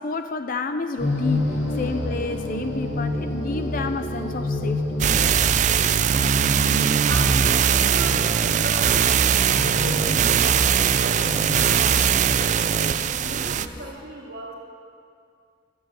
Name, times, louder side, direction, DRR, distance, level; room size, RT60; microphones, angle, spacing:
voice 1, 0.0-5.0, left 3 dB, 50° left, 8 dB, 0.5 m, -30 dB
sound 1, 1.0-13.8, left 2 dB, 85° left, 3.0 m, -30 dB
sound 2, 5.0-13.7, right 8 dB, 45° right, 0.4 m, -20 dB
voice 2, 6.6-14.5, right 1 dB, 60° right, -9 dB, 2.1 m, -36 dB
sound 3, 8.9-13.9, left 1 dB, 25° left, 1.8 m, -43 dB
13.0 x 8.1 x 8.9 m, 2.3 s
head